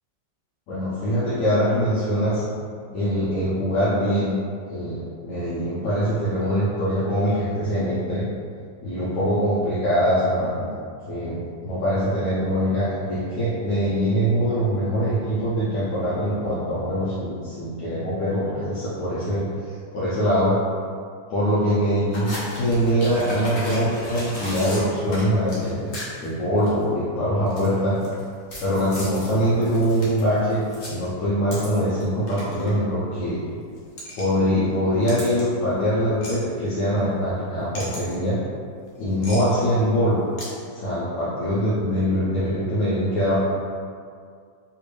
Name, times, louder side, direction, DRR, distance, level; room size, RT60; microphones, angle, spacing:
voice 1, 0.7-2.4 2.9-4.3 4.7-8.3 8.8-10.7 11.1-19.5 19.9-20.6 21.3-25.9 26.2-28.0 28.6-33.4 34.1-38.4 39.0-40.2 40.7-43.4, equal, 75° left, -11 dB, 1.3 m, -23 dB
sound 1, 22.1-26.3 26.6-26.8 27.5-28.2 28.5-32.0 32.3-32.7 33.8-34.2 35.1-35.4 36.2-36.3 37.7-38.1 39.2-39.4 40.4-40.5, left 1 dB, 45° left, 1.0 m, -35 dB
3.6 x 2.5 x 3.1 m, 2.2 s
omnidirectional pair, 1.9 m